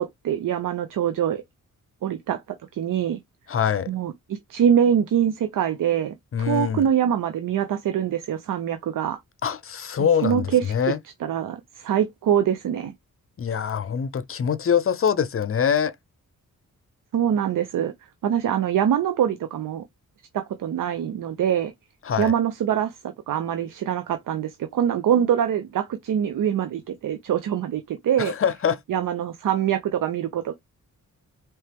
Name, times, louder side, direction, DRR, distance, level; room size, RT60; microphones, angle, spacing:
voice 1, 0.0-1.4 2.0-2.4 2.7-3.2 3.9-9.2 10.2-10.9 11.2-12.9 17.1-17.9 18.2-19.8 20.3-21.7 22.2-23.0 23.3-28.3 28.9-30.5, right 9 dB, 70° right, 0.6 m, -24 dB
voice 2, 3.5-3.9 6.3-6.9 9.4-11.0 13.4-15.9 22.0-22.3 28.2-28.8, left 7 dB, 40° left, 0.6 m, -24 dB
4.4 x 3.0 x 3.3 m
wide cardioid pair, 110°, 33 cm